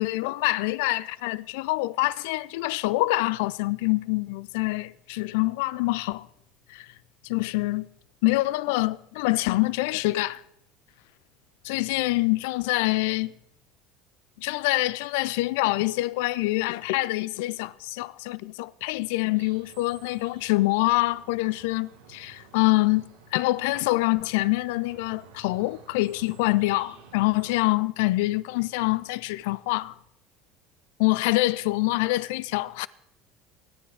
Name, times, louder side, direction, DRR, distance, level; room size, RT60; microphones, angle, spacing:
voice 1, 0.0-6.3 6.7-6.9 7.2-7.9 8.2-10.4 11.6-13.3 14.4-23.1 23.3-29.9 31.0-32.9, left 20 dB, 70° left, 0.4 m, -25 dB
sound 1, 19.3-27.6, right 5 dB, 85° right, 1.8 m, -52 dB
22.5 x 9.9 x 3.4 m
hypercardioid pair, 75°, 0 cm